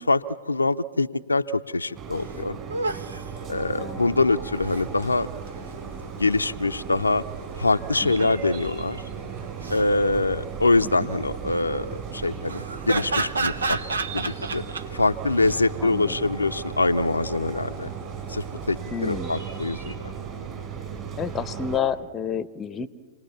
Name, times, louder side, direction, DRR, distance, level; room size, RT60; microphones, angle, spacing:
voice 1, 0.0-2.6 3.5-5.3 6.2-7.2 7.6-9.0 9.7-13.8 14.1-14.6 14.9-17.9 18.3-19.9, left 3 dB, 85° left, 7 dB, 0.6 m, -24 dB
sound 1, 1.9-21.8, right 6 dB, 30° right, 6.0 m, -36 dB
sound 2, 1.9-2.0 2.2-2.3 2.7-3.3 4.3-4.8 8.0-8.6 9.4-9.8 12.5-14.8 15.4-15.6, right 3 dB, 75° right, 1.0 m, -29 dB
voice 2, 3.8-4.2 11.0-11.1 15.8-16.2 18.9-19.4 21.1-22.9, left 7 dB, 20° left, 18 dB, 0.8 m, -30 dB
Forest light rain and wind bird song, 4.7-19.9, right 5 dB, 60° right, 3.1 m, -46 dB
28.0 x 19.0 x 7.1 m, 1.5 s
figure-of-eight pair, 105°, 0 cm